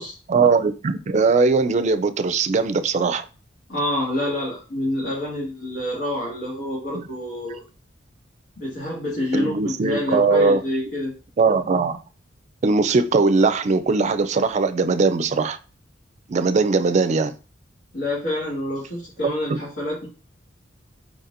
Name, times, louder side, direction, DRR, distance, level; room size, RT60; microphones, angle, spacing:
voice 1, 0.3-3.2 6.9-7.0 9.3-10.6 11.4-12.0 12.6-15.6 16.3-17.3 19.5-19.6, right 4 dB, 40° right, 0.4 m, -20 dB
voice 2, 3.7-7.6 8.6-11.1 17.9-20.1, left 1 dB, 85° left, 1.8 m, -27 dB
4.7 x 4.1 x 2.5 m
head